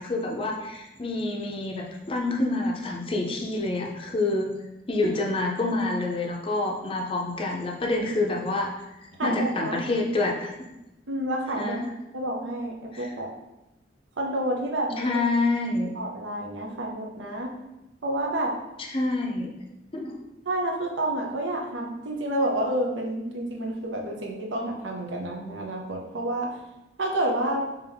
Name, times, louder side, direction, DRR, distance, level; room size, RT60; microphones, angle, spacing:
voice 1, 0.0-4.5 4.9-8.7 9.2-10.5 11.6-11.9 12.9-13.1 15.0-15.9 18.9-19.5 19.9-20.2, left 2 dB, 30° left, 0 dB, 0.5 m, -27 dB
voice 2, 9.2-9.8 11.1-11.8 12.1-13.3 14.2-15.1 15.9-17.5 18.0-18.5 20.5-26.6 27.0-27.6, right 1 dB, 90° right, 0 dB, 0.7 m, -29 dB
3.4 x 2.9 x 3.5 m, 0.94 s
head